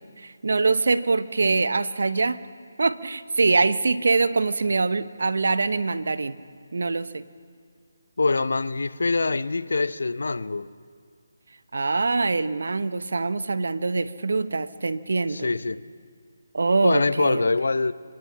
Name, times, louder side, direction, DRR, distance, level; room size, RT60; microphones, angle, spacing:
voice 1, 0.2-2.4 2.8-6.4 6.7-7.2 11.7-15.5 16.5-17.5, right 3 dB, 65° right, 0.9 m, -24 dB
voice 2, 8.2-10.7 15.3-15.8 16.8-17.9, left 3 dB, 65° left, 0.8 m, -24 dB
26.0 x 18.5 x 7.5 m
figure-of-eight pair, 150°, 0 cm